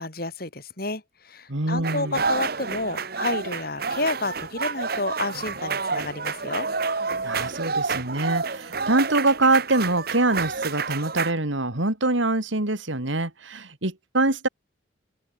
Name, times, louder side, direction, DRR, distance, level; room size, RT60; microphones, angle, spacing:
voice 1, 0.0-6.7, left 2 dB, 50° left, 4.3 m, -30 dB
voice 2, 1.5-2.2 7.2-14.5, right 2 dB, 75° right, 2.9 m, -24 dB
sound 1, 1.8-11.3, right 4 dB, 50° right, 1.3 m, -29 dB
open air
head